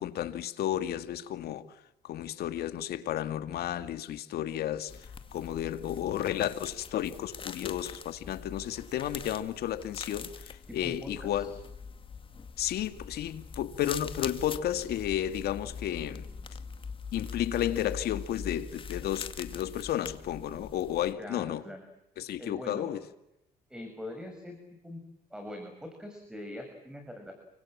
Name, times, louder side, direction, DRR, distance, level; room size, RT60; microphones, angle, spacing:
voice 1, 0.0-1.7 2.0-5.0 5.3-11.5 12.6-16.3 17.1-21.6 22.2-23.0, left 11 dB, 70° left, 2.3 m, -32 dB
sound 1, 4.9-21.1, left 5 dB, 30° left, 2.2 m, -43 dB
voice 2, 10.7-11.5 21.2-21.8 22.4-23.0 23.7-24.6 24.8-25.0 25.3-27.4, left 1 dB, 5° right, 6.4 m, -43 dB
30.0 x 25.0 x 7.5 m
cardioid pair, 110°, 17 cm